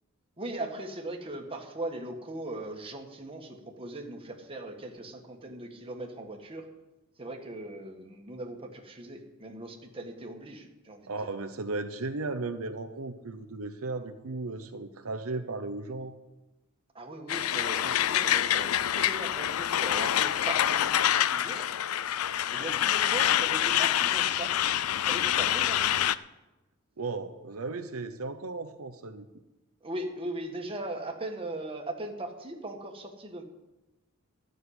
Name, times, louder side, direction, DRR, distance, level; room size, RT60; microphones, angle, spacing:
voice 1, 0.4-6.7 7.2-11.3 16.9-21.7 22.5-24.5 25.1-26.0 29.8-33.4, right 2 dB, 25° right, 2 dB, 1.6 m, -39 dB
voice 2, 11.1-16.2 27.0-29.3, right 3 dB, 80° right, 7 dB, 0.9 m, -35 dB
Truck, 17.3-26.2, left 11 dB, 80° left, 0.4 m, -26 dB
13.0 x 6.5 x 9.7 m, 1.0 s
head